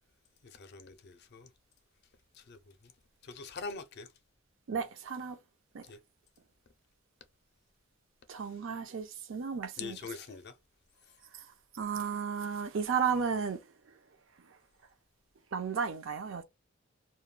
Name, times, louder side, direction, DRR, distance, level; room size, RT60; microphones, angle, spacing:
voice 1, 0.4-1.5 2.3-2.9 3.2-4.1 5.8-6.0 9.8-10.6, left 5 dB, 55° left, 0.4 m, -44 dB
voice 2, 4.7-5.4 5.7-5.8 8.3-10.0 11.7-13.6 15.5-16.4, right 6 dB, 70° right, 0.5 m, -33 dB
2.2 x 2.1 x 3.1 m
head